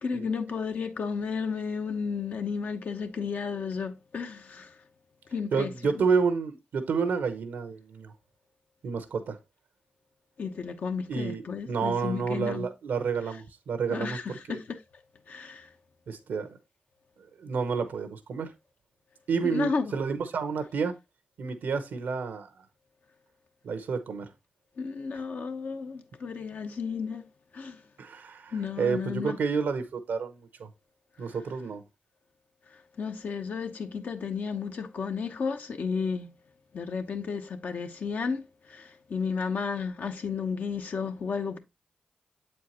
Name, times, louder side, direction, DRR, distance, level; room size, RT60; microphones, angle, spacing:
voice 1, 0.0-4.8 5.3-6.0 10.4-12.7 13.9-14.8 15.3-15.7 19.4-19.9 24.8-27.2 27.5-27.8 28.5-29.4 31.2-31.3 32.7-36.3 36.7-41.6, left 5 dB, 70° left, 0.8 m, -33 dB
voice 2, 5.5-8.1 8.8-9.4 11.1-14.6 16.1-16.5 17.4-18.5 19.3-20.9 21.4-22.5 23.6-24.3 28.0-30.7 31.2-31.8, right 5 dB, 80° right, 0.8 m, -30 dB
7.5 x 4.5 x 2.8 m
supercardioid pair, 45°, 3 cm